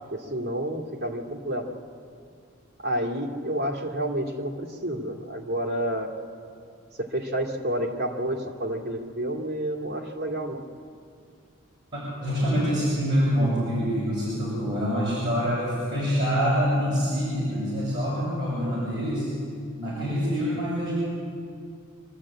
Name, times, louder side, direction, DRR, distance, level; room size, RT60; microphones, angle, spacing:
voice 1, 0.1-1.7 2.8-6.1 7.0-10.6, right 1 dB, 50° right, 1 dB, 2.4 m, -29 dB
voice 2, 12.2-19.3 19.8-20.9, equal, 20° right, -10 dB, 7.1 m, -25 dB
25.0 x 12.5 x 8.7 m, 2.3 s
head